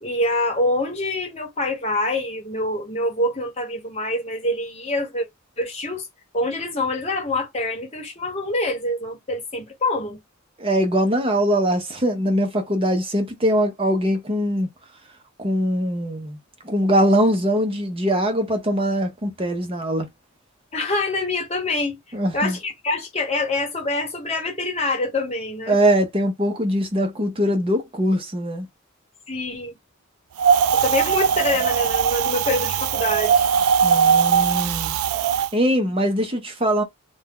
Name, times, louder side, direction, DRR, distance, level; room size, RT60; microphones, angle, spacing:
voice 1, 0.0-5.3 5.6-6.1 6.3-10.2 20.7-22.0 22.3-25.8 29.3-29.8 30.7-33.4, left 2 dB, 30° left, 1.1 m, -25 dB
voice 2, 10.6-14.7 15.4-16.4 16.6-20.1 22.1-22.6 25.7-28.7 33.8-35.0 35.5-36.8, equal, 25° right, 0.7 m, -22 dB
Wind, 30.4-35.5, right 7 dB, 90° right, 0.3 m, -20 dB
2.7 x 2.2 x 3.6 m
head